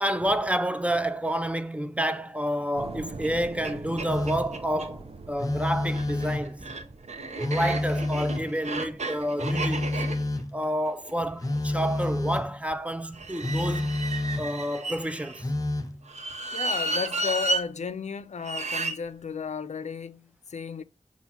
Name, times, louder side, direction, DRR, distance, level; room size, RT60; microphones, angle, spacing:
voice 1, 0.0-6.7 7.3-10.0 10.5-14.0 14.4-15.5, equal, 10° right, 0.5 m, -29 dB
sound 1, 2.8-9.0, right 3 dB, 60° right, 0.6 m, -43 dB
sound 2, 3.2-3.3 3.6-3.7 4.0-4.9 5.8-12.0 13.1-15.4 16.1-17.6 18.4-19.0, right 2 dB, 80° right, 0.9 m, -33 dB
Telephone, 4.1-4.6 5.4-6.6 7.4-8.6 9.4-10.6 11.4-12.5 13.4-14.6 15.4-16.0, left 2 dB, 30° left, 0.7 m, -29 dB
voice 2, 16.5-20.8, left 6 dB, 85° left, 0.4 m, -34 dB
6.9 x 2.4 x 5.6 m
wide cardioid pair, 60°, 12 cm